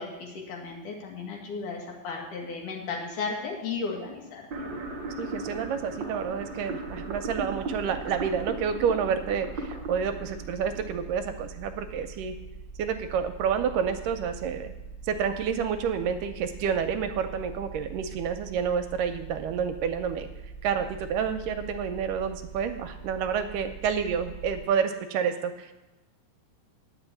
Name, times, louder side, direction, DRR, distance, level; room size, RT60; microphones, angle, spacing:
voice 1, 0.0-4.7, left 4 dB, 65° left, 0 dB, 3.1 m, -35 dB
sound 1, 4.5-11.5, right 2 dB, 65° right, 1.1 m, -37 dB
voice 2, 5.2-12.4 12.8-14.7 15.0-20.3 20.6-25.7, right 7 dB, 80° right, 8 dB, 2.1 m, -29 dB
sound 2, 6.9-24.6, right 4 dB, 35° left, 1.7 m, -43 dB
9.8 x 5.9 x 8.3 m, 1.1 s
omnidirectional pair, 4.0 m